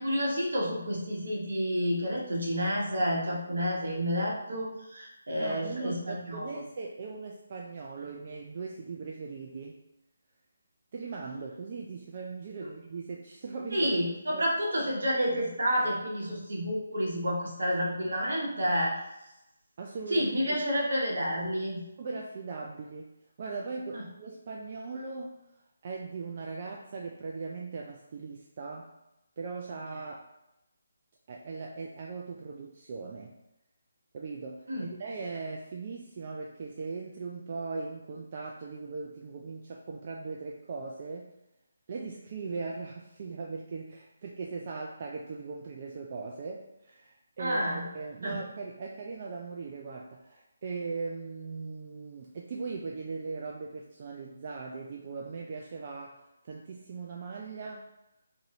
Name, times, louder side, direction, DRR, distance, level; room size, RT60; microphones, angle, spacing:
voice 1, 0.0-6.5 12.6-12.7 13.7-19.0 20.1-21.8 23.9-24.0 34.7-34.8 47.4-47.8 48.2-48.3, equal, 70° right, -3 dB, 1.0 m, -29 dB
voice 2, 5.4-9.8 10.9-14.0 14.3-14.4 19.8-20.6 22.0-23.1 23.4-25.4 25.8-28.9 29.4-30.2 31.3-33.4 34.1-41.3 41.9-57.9, right 4 dB, 40° right, -1 dB, 0.3 m, -39 dB
2.6 x 2.6 x 2.9 m, 0.90 s
figure-of-eight pair, 155°, 0 cm